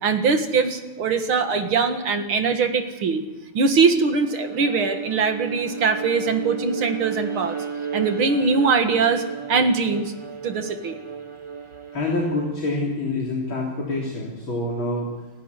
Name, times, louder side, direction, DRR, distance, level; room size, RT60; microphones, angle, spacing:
voice 1, 0.0-3.3 3.5-7.6 7.9-9.2 9.5-10.1 10.4-11.0, right 4 dB, 70° right, 6 dB, 2.6 m, -22 dB
Bowed string instrument, 4.2-12.6, right 6 dB, 40° right, 0.4 m, -33 dB
voice 2, 11.9-15.1, left 2 dB, 65° left, -3 dB, 4.4 m, -26 dB
29.5 x 11.5 x 9.9 m, 1.1 s
omnidirectional pair, 2.4 m